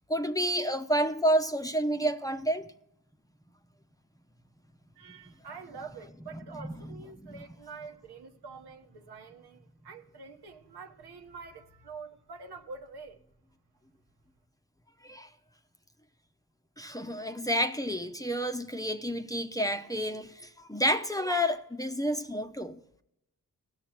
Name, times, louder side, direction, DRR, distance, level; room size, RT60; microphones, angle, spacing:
voice 1, 0.1-2.7 5.3-5.4 6.3-7.4 15.0-15.3 16.8-22.8, equal, 10° left, 0.9 m, -30 dB
voice 2, 5.0-13.2, right 4 dB, 70° right, 1.2 m, -46 dB
15.5 x 6.5 x 5.9 m
supercardioid pair, 45°, 41 cm